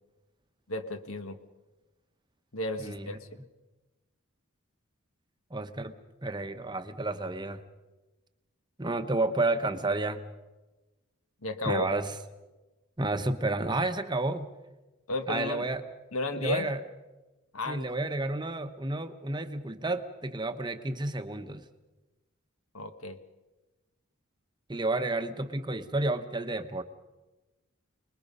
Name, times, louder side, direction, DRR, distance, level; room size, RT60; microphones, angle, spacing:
voice 1, 0.7-1.4 2.5-3.3 11.4-11.9 15.1-15.7 16.1-16.7 17.5-17.8 22.7-23.2, left 2 dB, 75° left, 8 dB, 1.5 m, -33 dB
voice 2, 5.5-6.0 6.2-7.6 8.8-10.2 11.6-12.1 13.0-14.5 15.3-15.8 16.3-16.8 17.7-21.6 24.7-26.8, right 2 dB, 20° right, 8 dB, 0.9 m, -31 dB
28.5 x 20.5 x 5.4 m, 1.1 s
head